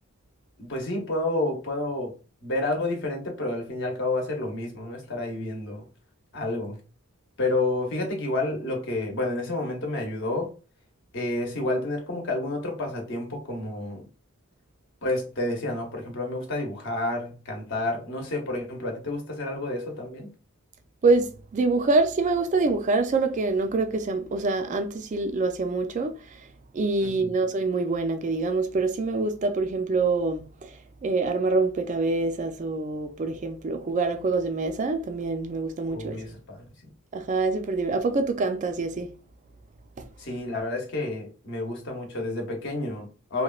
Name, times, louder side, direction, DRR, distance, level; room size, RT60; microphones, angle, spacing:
voice 1, 0.6-2.1 2.4-5.8 6.3-6.8 7.4-10.5 11.1-14.1 15.0-20.3 27.0-27.3 35.9-36.9 40.2-43.4, left 2 dB, 55° left, 0.8 m, -30 dB
voice 2, 21.0-26.5 26.7-36.2 37.1-39.1 40.0-40.1, right 3 dB, 35° right, 0.3 m, -25 dB
3.0 x 2.1 x 2.3 m
head